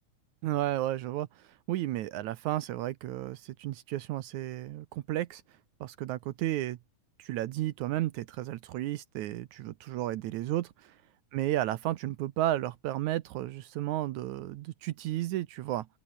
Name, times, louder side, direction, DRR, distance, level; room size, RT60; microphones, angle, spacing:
voice 1, 0.4-5.4 5.8-6.8 7.2-11.0 11.3-15.9, right 14 dB, 75° right, 2.1 m, -33 dB
open air
omnidirectional pair, 3.6 m